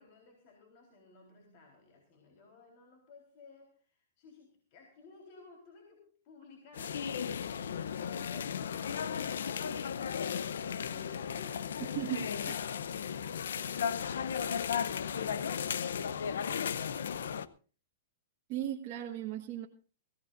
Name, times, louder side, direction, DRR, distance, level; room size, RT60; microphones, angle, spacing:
voice 1, 0.0-7.4 10.4-12.0, left 3 dB, 45° left, 1 dB, 4.0 m, -57 dB
sound 1, 6.7-17.5, left 7 dB, 85° left, 0.7 m, -35 dB
voice 2, 11.9-12.7 18.5-19.7, right 12 dB, 35° right, -1 dB, 1.4 m, -37 dB
20.0 x 16.5 x 2.6 m, 0.38 s
hypercardioid pair, 150°, 0 cm